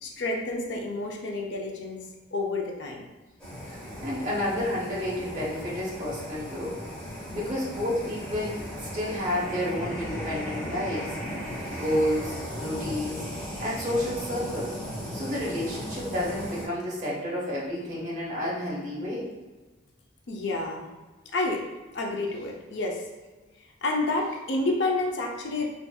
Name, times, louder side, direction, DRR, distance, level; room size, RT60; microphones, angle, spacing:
voice 1, 0.0-2.0 2.3-3.0 20.3-20.9 21.3-21.7 21.9-23.0 23.8-25.7, left 2 dB, 65° left, 1 dB, 0.5 m, -29 dB
sound 1, 3.4-16.7, equal, 5° left, 0.9 m, -36 dB
voice 2, 3.7-6.8 7.3-11.2 11.7-13.3 13.6-14.8 15.1-19.3, left 1 dB, 40° right, -6 dB, 1.0 m, -30 dB
4.7 x 2.5 x 2.3 m, 1.2 s
head